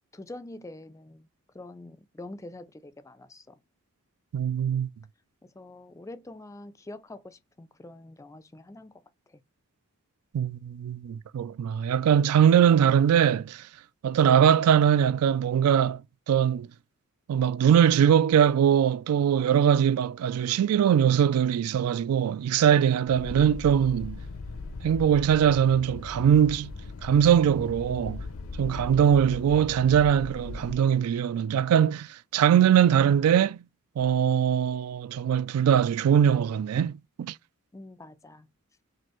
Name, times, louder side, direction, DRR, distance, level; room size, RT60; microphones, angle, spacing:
voice 1, 0.1-1.3 1.5-3.6 5.4-9.4 28.6-29.1 37.7-38.5, left 2 dB, 15° left, 0.3 m, -45 dB
voice 2, 4.3-4.9 10.3-13.6 14.0-16.0 16.3-16.7 17.3-24.2 24.8-26.7 27.0-28.2 28.6-32.1 32.3-33.6 34.0-36.9 37.2-37.3, right 9 dB, 90° right, 0.3 m, -21 dB
sound 1, 23.1-30.8, left 3 dB, 65° left, 0.5 m, -39 dB
6.2 x 2.4 x 3.0 m
head